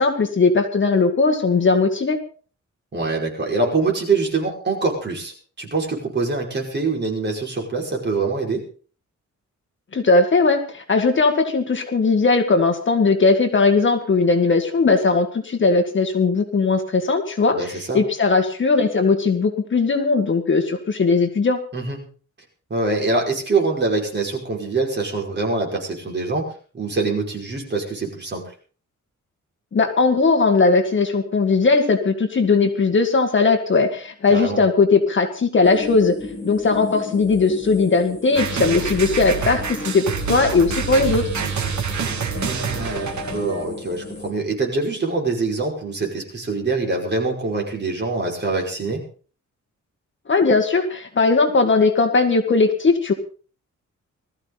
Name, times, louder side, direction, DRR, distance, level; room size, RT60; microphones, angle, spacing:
voice 1, 0.0-2.2 9.9-21.6 29.7-36.1 36.4-40.0 40.3-41.3 50.3-53.1, left 4 dB, 40° left, 6 dB, 1.8 m, -18 dB
voice 2, 2.9-8.6 17.5-18.0 21.7-22.0 22.7-26.4 26.7-28.4 34.3-34.6 42.4-49.0, right 3 dB, 35° right, 0 dB, 5.3 m, -24 dB
sound 1, 35.6-44.3, left 2 dB, 10° left, 3.0 m, -35 dB
sound 2, 38.3-43.6, right 5 dB, 65° right, 2.6 m, -27 dB
20.0 x 14.0 x 4.0 m, 0.41 s
wide cardioid pair, 165°, 30 cm